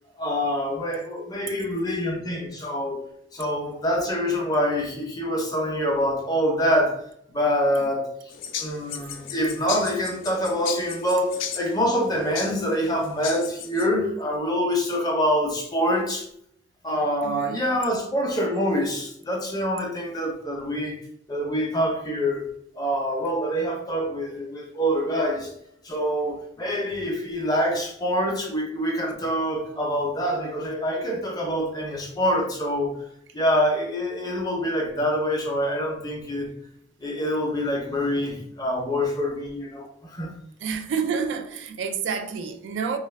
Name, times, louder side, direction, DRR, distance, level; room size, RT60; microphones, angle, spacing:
voice 1, 0.2-3.0 3.3-7.0 7.3-8.1 8.6-16.3 16.8-21.0 21.3-22.5 22.8-25.5 25.8-32.9 33.3-36.5 37.0-40.3, equal, 20° left, 0.6 m, -25 dB
sound 1, 8.3-13.9, left 9 dB, 75° left, 0.4 m, -36 dB
voice 2, 17.2-17.6 40.6-43.0, right 6 dB, 70° right, 0.3 m, -29 dB
3.1 x 2.3 x 3.2 m
head